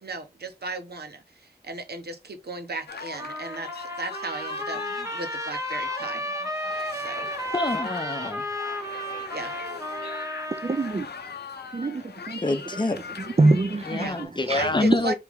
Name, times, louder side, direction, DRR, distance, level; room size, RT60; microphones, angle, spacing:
voice 1, 0.0-4.8 5.1-6.2 6.9-7.3 9.3-9.6 14.0-14.2 14.5-15.1, right 3 dB, 75° right, 1.0 m, -35 dB
sound 1, 2.9-14.3, left 5 dB, 85° left, 0.6 m, -40 dB
Trumpet, 3.1-11.0, equal, 20° right, 0.9 m, -33 dB
voice 2, 7.5-8.4 12.4-13.0 13.8-15.1, left 2 dB, 30° left, 0.7 m, -26 dB
voice 3, 10.5-11.1 11.7-12.4 13.4-14.1 14.5-14.7, right 3 dB, 40° right, 0.5 m, -23 dB
3.4 x 3.0 x 3.6 m
wide cardioid pair, 50°, 17 cm